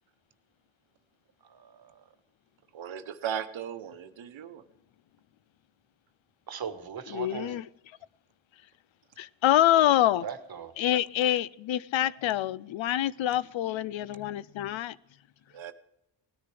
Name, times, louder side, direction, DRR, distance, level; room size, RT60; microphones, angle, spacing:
voice 1, 1.4-2.1 6.5-7.6 10.2-10.8, right 7 dB, 50° right, 1.3 m, -39 dB
voice 2, 2.7-4.6 15.5-15.7, right 8 dB, 75° right, 1.0 m, -37 dB
voice 3, 7.1-7.6 9.2-10.2 10.8-15.0, left 12 dB, 75° left, 0.6 m, -26 dB
18.5 x 10.0 x 3.3 m
cardioid pair, 90°, 47 cm